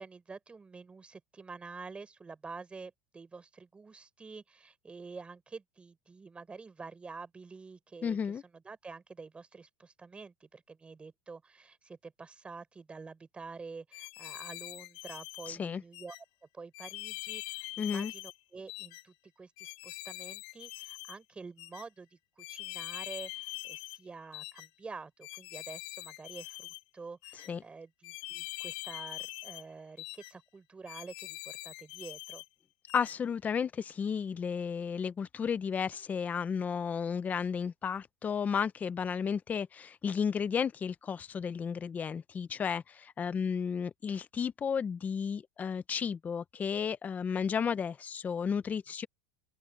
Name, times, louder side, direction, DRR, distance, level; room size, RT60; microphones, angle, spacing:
voice 1, 0.0-16.2 16.5-32.4, right 4 dB, 15° right, 4.6 m, -48 dB
voice 2, 8.0-8.4 15.5-15.8 17.8-18.1 27.5-27.6 32.9-49.1, left 6 dB, 20° left, 0.7 m, -33 dB
sound 1, 13.9-15.5 15.9-16.2 16.7-18.4 18.7-19.0 19.6-21.2 21.6-21.8 22.4-24.0 24.3-24.7 25.2-26.8 27.2-27.5 28.0-29.7 30.0-30.3 30.9-32.5 32.9-33.2, left 22 dB, 60° left, 1.5 m, -43 dB
supercardioid pair, 130°, 7 cm